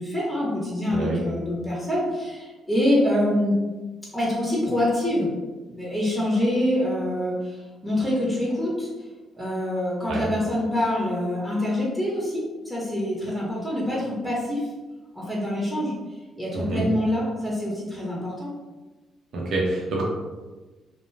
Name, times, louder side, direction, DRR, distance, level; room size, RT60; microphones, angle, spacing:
voice 1, 0.0-3.6 4.1-5.3 5.7-8.9 9.3-14.7 15.1-15.9 16.4-18.5, left 1 dB, 5° right, -6 dB, 0.9 m, -25 dB
voice 2, 16.5-16.8 19.3-20.0, right 2 dB, 65° right, -3 dB, 0.8 m, -26 dB
2.6 x 2.2 x 3.2 m, 1.2 s
cardioid pair, 90°, 0 cm